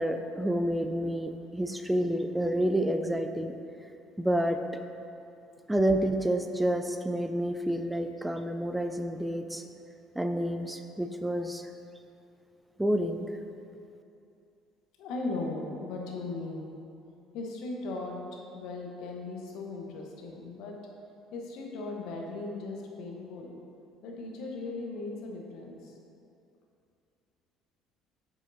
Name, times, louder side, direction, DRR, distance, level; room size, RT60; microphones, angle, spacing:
voice 1, 0.0-3.5 4.2-4.6 5.7-9.6 10.2-11.6 12.8-13.3, right 1 dB, 5° right, 7 dB, 0.5 m, -29 dB
voice 2, 15.0-16.7 17.3-20.8 21.3-23.5 24.0-26.0, left 3 dB, 65° left, 0 dB, 1.0 m, -38 dB
8.9 x 6.1 x 2.7 m, 2.6 s
hypercardioid pair, 60°, 0 cm